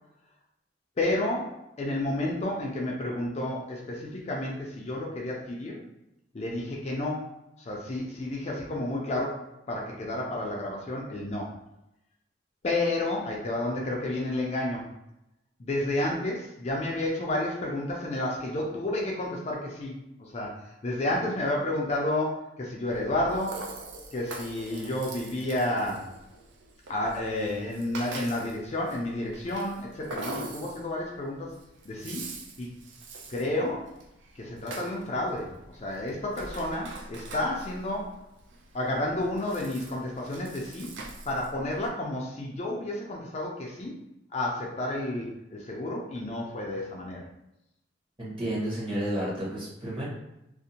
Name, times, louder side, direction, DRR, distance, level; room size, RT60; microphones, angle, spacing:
voice 1, 1.0-5.8 6.3-11.6 12.6-14.9 15.6-23.6 24.1-26.1 26.9-31.6 31.8-32.2 32.6-32.7 33.3-33.9 34.4-38.2 38.7-40.9 41.3-43.9 44.3-47.2, left 1 dB, 35° left, -2 dB, 0.3 m, -31 dB
Rattle (instrument), 22.9-41.9, right 2 dB, 75° right, 0.4 m, -44 dB
voice 2, 48.2-50.1, right 1 dB, 25° right, -7 dB, 0.9 m, -31 dB
2.5 x 2.1 x 2.7 m, 0.85 s
head